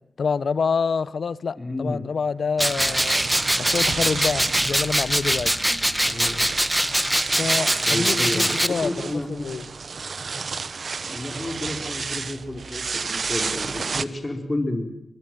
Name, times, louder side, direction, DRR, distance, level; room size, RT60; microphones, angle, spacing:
voice 1, 0.2-3.2 3.6-5.5 7.4-9.7, left 5 dB, 75° left, 20 dB, 0.8 m, -27 dB
voice 2, 1.6-2.0 6.1-6.5 7.9-9.5 11.1-14.9, left 2 dB, 30° left, 5 dB, 4.3 m, -30 dB
sound 1, 2.6-8.7, right 1 dB, 10° right, 1.3 m, -23 dB
sound 2, 2.8-14.0, right 5 dB, 65° right, 1.1 m, -31 dB
23.0 x 22.5 x 7.7 m, 0.82 s
cardioid pair, 55°, 0 cm